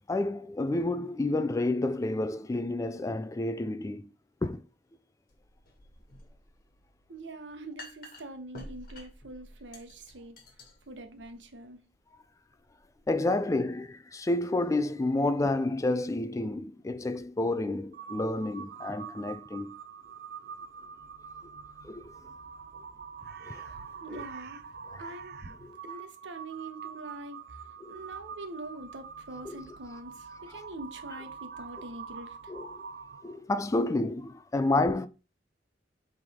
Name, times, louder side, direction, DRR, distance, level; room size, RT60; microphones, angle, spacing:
voice 1, 0.1-4.1 4.4-4.6 13.1-19.7 21.8-22.0 23.5-23.7 24.1-24.2 24.9-25.0 25.6-25.8 27.8-27.9 29.5-29.6 32.5-32.8 33.2-35.1, left 2 dB, 20° left, 0.3 m, -30 dB
sound 1, 5.3-13.1, left 1 dB, 55° left, 1.6 m, -51 dB
voice 2, 7.1-10.3 10.9-11.8 24.0-24.6 25.0-25.4 25.8-27.6 27.9-32.4, right 2 dB, 85° right, 1.1 m, -44 dB
Crow, 17.9-33.4, right 6 dB, 55° right, 0.5 m, -45 dB
7.9 x 3.4 x 3.6 m
head